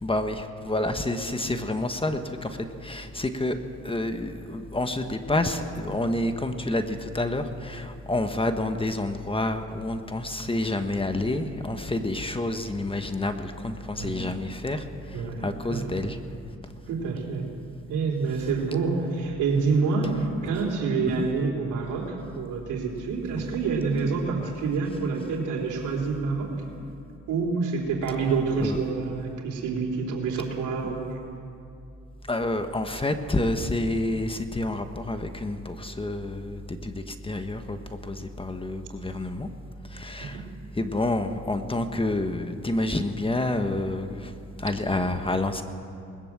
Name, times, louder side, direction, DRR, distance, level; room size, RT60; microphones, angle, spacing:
voice 1, 0.0-3.6 3.8-14.9 15.1-16.2 16.6-16.7 20.4-20.5 21.2-21.3 24.4-24.5 28.6-28.8 32.3-37.8 38.0-39.5 39.9-40.4 40.7-44.3 44.6-45.6, left 2 dB, 20° left, 7 dB, 1.4 m, -28 dB
voice 2, 14.0-14.3 15.1-15.9 16.8-17.5 17.9-26.5 27.3-31.2 40.2-40.5, right 4 dB, 85° right, 0 dB, 3.8 m, -27 dB
20.0 x 20.0 x 7.5 m, 2.5 s
cardioid pair, 90°, 30 cm